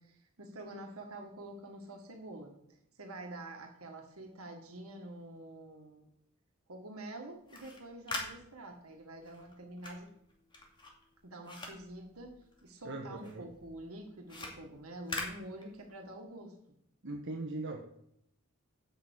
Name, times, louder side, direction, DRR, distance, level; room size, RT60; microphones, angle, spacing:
voice 1, 0.0-6.1 6.7-10.1 11.2-12.3 12.6-16.8, right 1 dB, 80° right, 3 dB, 1.8 m, -47 dB
sound 1, 7.3-12.9 13.2-16.1, left 2 dB, 20° left, 2.4 m, -44 dB
voice 2, 12.8-13.4 17.0-17.8, right 2 dB, 60° right, 2 dB, 1.2 m, -39 dB
8.0 x 6.8 x 8.3 m, 0.72 s
head